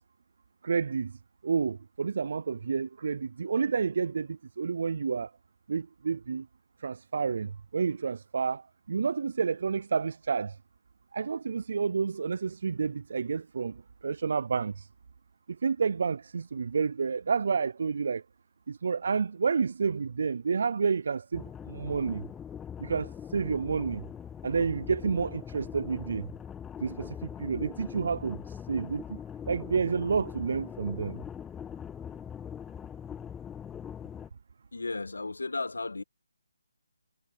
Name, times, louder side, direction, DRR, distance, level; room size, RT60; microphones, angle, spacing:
voice 1, 0.6-1.2 1.4-5.3 5.7-6.5 6.8-10.6 11.1-14.9 15.6-18.2 18.7-22.2 22.8-24.0 24.4-26.3 26.8-29.2 29.5-31.2, right 5 dB, 60° right, 0.5 m, -30 dB
sound 1, 21.3-34.3, left 8 dB, 10° left, 0.3 m, -42 dB
voice 2, 34.7-36.0, left 3 dB, 85° left, 1.7 m, -34 dB
figure-of-eight pair, 155°, 0 cm